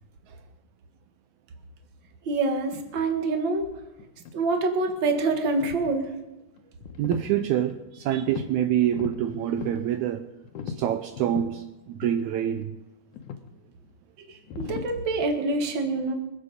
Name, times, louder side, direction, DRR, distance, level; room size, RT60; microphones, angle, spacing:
voice 1, 2.2-3.7 4.3-6.1 14.2-16.1, right 3 dB, 45° right, 4 dB, 1.7 m, -26 dB
sound 1, 4.0-4.3 4.8-6.1 6.6-7.3 7.7-8.5 8.8-9.8 10.4-11.6 12.0-12.2 12.5-12.7 13.1-13.5 14.4-14.9, left 6 dB, 70° left, 2.3 m, -38 dB
voice 2, 7.0-10.3 10.7-12.8, right 11 dB, 80° right, 8 dB, 1.7 m, -26 dB
24.0 x 8.6 x 5.1 m, 1.0 s
omnidirectional pair, 4.0 m